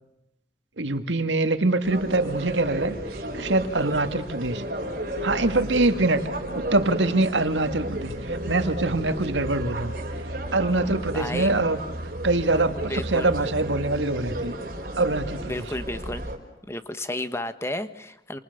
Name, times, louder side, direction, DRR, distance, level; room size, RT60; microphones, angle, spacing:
voice 1, 0.8-3.0 3.3-4.6 5.2-6.2 6.5-9.9 10.5-11.8 12.2-14.5 15.0-15.5, right 2 dB, 90° right, 9 dB, 2.0 m, -24 dB
sound 1, 1.8-16.4, right 1 dB, 50° right, 5.1 m, -34 dB
sound 2, 7.7-14.4, right 1 dB, 65° right, 1.7 m, -38 dB
voice 2, 11.1-11.5 12.9-13.3 15.4-16.3 16.7-18.4, left 1 dB, 15° left, 11 dB, 1.4 m, -32 dB
28.5 x 27.5 x 6.8 m, 0.91 s
head